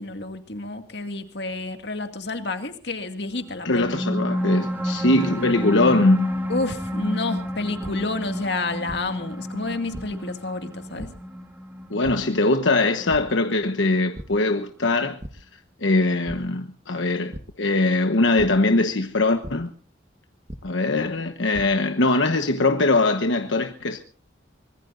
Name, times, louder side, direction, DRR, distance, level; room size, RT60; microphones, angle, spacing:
voice 1, 0.0-3.9 6.5-11.1, left 2 dB, 60° left, 2.2 m, -30 dB
voice 2, 3.6-6.3 11.9-15.2 15.8-19.7 20.6-24.0, left 2 dB, 85° left, 1.1 m, -21 dB
sound 1, 3.6-14.5, equal, 10° right, 2.8 m, -30 dB
sound 2, 7.8-7.9 8.9-9.0 9.9-10.0 11.0-11.1 12.0-12.1 13.1-13.2 13.6-13.8 14.1-14.3 15.2-15.3 16.3-16.4 17.3-17.4 18.4-18.5 19.4-19.5 20.5-20.6 21.3-21.6, right 1 dB, 35° right, 1.2 m, -35 dB
24.0 x 21.0 x 2.6 m
head